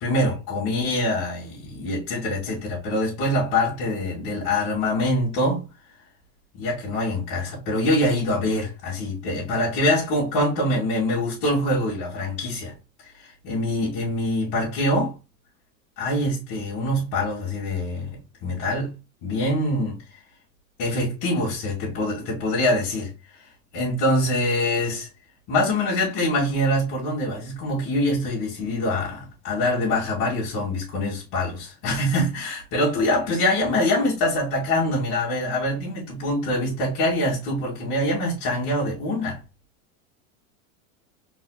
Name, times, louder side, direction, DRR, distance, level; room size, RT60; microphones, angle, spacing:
voice 1, 0.0-5.7 6.5-12.7 13.2-15.1 16.0-18.9 19.2-20.0 20.8-23.1 23.7-25.1 25.5-39.4, left 1 dB, 60° left, 2.5 m, -24 dB
4.0 x 3.9 x 2.3 m
supercardioid pair, 105°, 43 cm